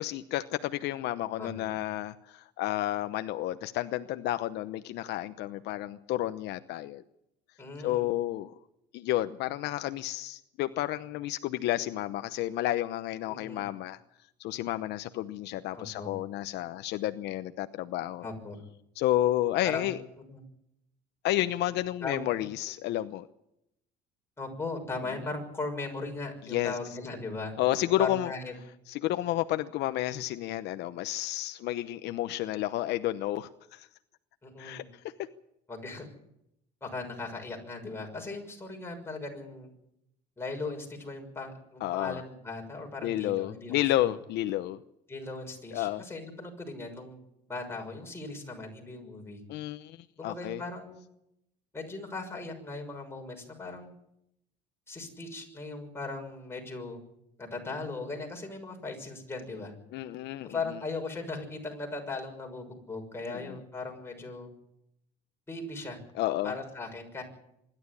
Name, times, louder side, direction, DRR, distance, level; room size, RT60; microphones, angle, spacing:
voice 1, 0.0-7.0 7.8-8.5 8.9-14.0 14.4-18.3 19.0-20.0 21.2-23.3 26.5-26.7 27.6-28.3 28.9-33.9 34.6-34.8 41.8-42.2 43.0-44.8 45.7-46.0 49.5-50.0 50.2-50.6 59.9-60.5 63.3-63.6 66.2-66.5, left 14 dB, 70° left, 11 dB, 0.9 m, -31 dB
voice 2, 1.4-1.7 7.6-8.0 13.3-13.7 15.7-16.1 18.2-18.6 19.6-20.0 20.3-20.4 22.0-22.4 24.4-27.5 28.0-28.5 34.4-34.9 35.7-36.1 36.8-39.7 40.4-44.1 45.1-47.2 47.5-49.4 50.2-51.0 51.7-53.9 54.9-57.0 57.4-59.7 60.4-64.5 65.5-66.0 66.4-67.2, left 3 dB, 15° left, 1 dB, 6.3 m, -38 dB
25.0 x 12.0 x 9.9 m, 0.81 s
cardioid pair, 125°, 18 cm